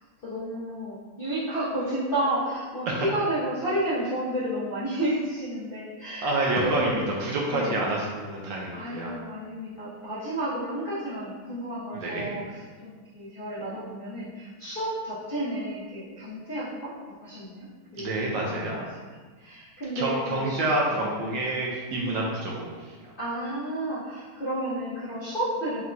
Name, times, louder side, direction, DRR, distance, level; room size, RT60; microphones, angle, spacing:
voice 1, 0.2-6.9 7.5-7.8 8.7-16.9 17.2-17.7 17.9-18.1 18.5-18.9 19.4-20.6 20.9-21.0 22.0-22.2 23.2-25.8, right 1 dB, 65° left, -11 dB, 0.5 m, -31 dB
voice 2, 6.2-9.1 11.9-12.3 17.9-18.8 20.0-23.1, right 2 dB, 75° right, -2 dB, 1.1 m, -28 dB
4.4 x 2.2 x 3.8 m, 1.4 s
omnidirectional pair, 2.3 m